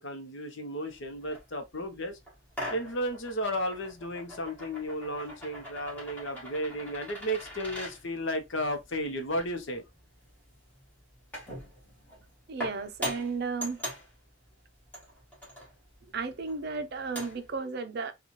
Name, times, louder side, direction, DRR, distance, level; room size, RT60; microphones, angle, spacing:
voice 1, 0.0-2.2 2.7-9.8, equal, 60° left, 0.8 m, -34 dB
sound 1, 0.9-17.6, equal, 5° left, 1.5 m, -43 dB
voice 2, 12.5-13.8 16.1-18.1, right 4 dB, 50° right, 0.5 m, -34 dB
3.9 x 2.4 x 3.0 m
head